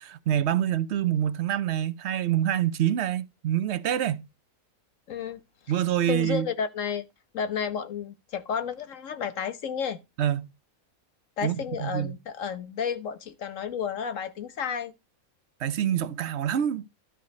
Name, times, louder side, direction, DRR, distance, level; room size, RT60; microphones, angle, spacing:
voice 1, 0.0-4.3 5.7-6.5 10.2-10.5 11.4-12.1 15.6-16.9, right 11 dB, 60° right, 0.9 m, -26 dB
voice 2, 5.1-5.4 6.1-7.0 7.3-10.0 11.4-14.9, left 7 dB, 65° left, 1.4 m, -31 dB
12.5 x 4.9 x 5.2 m
omnidirectional pair, 1.5 m